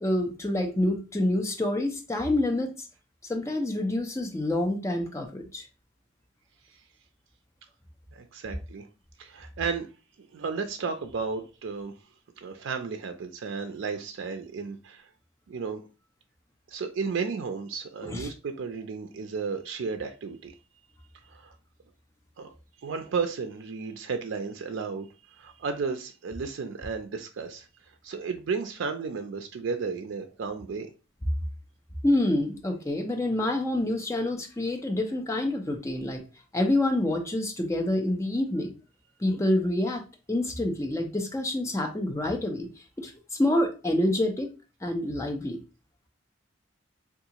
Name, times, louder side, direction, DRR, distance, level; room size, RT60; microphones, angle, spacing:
voice 1, 0.0-2.7 3.2-5.6 18.0-18.3 32.0-36.2 36.5-38.7 39.2-40.0 40.3-42.7 43.0-44.5 44.8-45.6, left 1 dB, 15° left, 0.5 m, -27 dB
voice 2, 8.1-8.9 9.2-9.9 10.2-11.9 12.4-15.1 15.5-15.8 16.7-20.5 21.3-21.5 22.4-22.5 22.8-27.7 28.0-30.9, right 5 dB, 75° right, 0.4 m, -33 dB
3.6 x 2.4 x 2.8 m
head